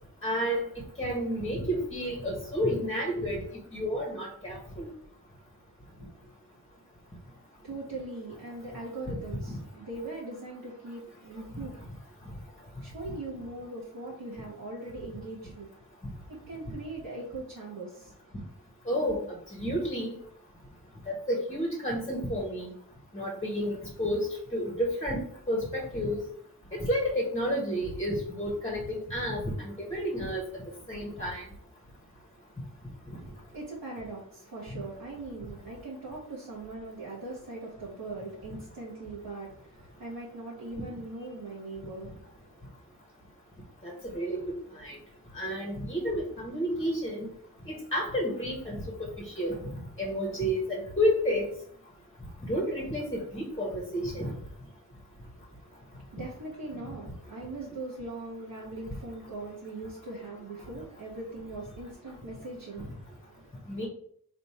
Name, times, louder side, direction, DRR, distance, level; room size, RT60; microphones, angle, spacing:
voice 1, 0.2-0.6 1.0-3.4 3.7-4.9 18.9-19.2 19.5-20.1 21.1-22.7 23.1-25.2 25.5-26.2 26.7-30.4 30.9-31.4 43.8-44.4 44.8-45.0 45.3-47.3 47.7-49.1 49.4-49.6 50.0-51.5 52.4-54.3 63.7-63.9, equal, 20° left, -1 dB, 1.2 m, -30 dB
voice 2, 7.6-11.9 12.8-15.7 16.3-18.1 33.2-42.3 55.4-63.5, right 2 dB, 70° right, -5 dB, 1.3 m, -41 dB
3.5 x 2.5 x 4.3 m, 0.63 s
cardioid pair, 55°, 36 cm